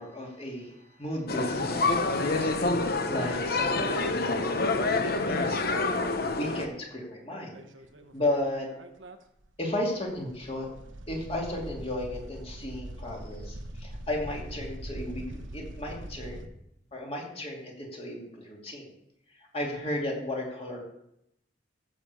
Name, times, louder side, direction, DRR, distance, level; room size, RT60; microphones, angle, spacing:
voice 1, 0.0-2.5 3.1-6.0 6.4-7.6 8.1-8.7 9.6-10.7 11.1-15.2 15.5-16.5 16.9-18.9 19.3-20.8, left 1 dB, 30° left, -1 dB, 2.7 m, -34 dB
sound 1, 1.3-6.7, left 3 dB, 55° left, 1.0 m, -27 dB
sound 2, 7.5-9.2 9.4-9.5 9.9-16.5, right 1 dB, 90° right, 1.1 m, -42 dB
14.5 x 5.1 x 6.9 m, 0.80 s
head